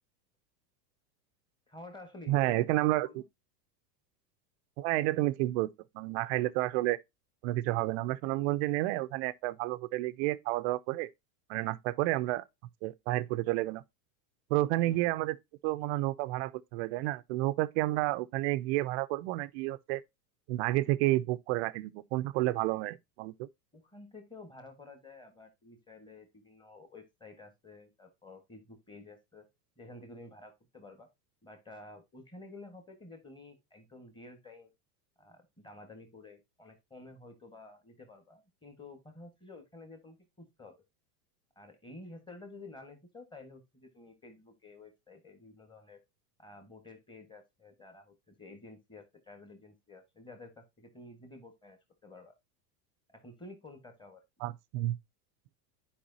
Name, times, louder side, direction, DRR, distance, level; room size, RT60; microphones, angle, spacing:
voice 1, 1.7-2.7 3.0-3.2 14.8-15.1 23.7-29.5 29.8-31.1 31.4-34.7 35.2-40.8 41.5-46.0 46.4-52.3 53.1-54.2, left 2 dB, 10° left, 1.4 m, -51 dB
voice 2, 2.3-3.2 4.8-5.7 5.9-7.0 7.4-11.1 11.5-12.4 12.8-13.8 14.5-15.4 15.6-20.0 20.5-23.5 54.4-55.0, right 17 dB, 45° right, 0.4 m, -30 dB
10.0 x 4.9 x 2.7 m
supercardioid pair, 125°, 49 cm